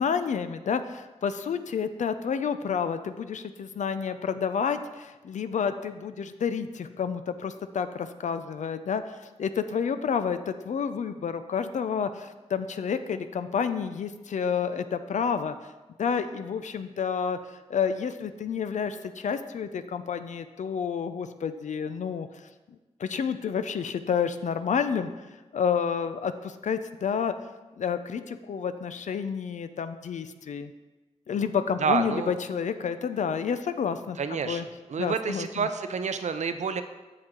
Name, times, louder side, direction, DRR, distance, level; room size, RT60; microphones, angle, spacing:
voice 1, 0.0-15.6 16.0-22.3 23.0-25.1 25.5-27.3 27.8-30.7 31.3-34.7 35.0-35.7, left 6 dB, 85° left, 10 dB, 0.4 m, -30 dB
voice 2, 31.8-32.4 34.2-34.6 34.9-36.8, right 5 dB, 70° right, 9 dB, 0.5 m, -28 dB
7.8 x 7.4 x 3.7 m, 1.2 s
wide cardioid pair, 125°, 12 cm